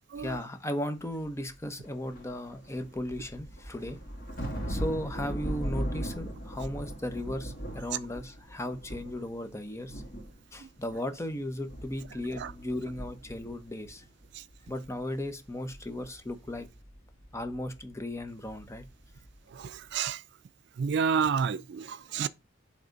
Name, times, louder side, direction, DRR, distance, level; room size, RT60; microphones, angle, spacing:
voice 1, 0.2-4.0 4.7-10.0 10.5-14.0 14.7-16.7 17.3-18.9, left 1 dB, 15° left, 0.9 m, -36 dB
sound 1, 1.8-9.5 9.8-11.3 11.6-14.2 14.5-19.4 19.6-19.9, equal, 50° left, 2.2 m, -39 dB
voice 2, 19.6-20.2 20.8-22.3, right 6 dB, 60° right, 0.4 m, -29 dB
7.9 x 3.4 x 5.1 m
head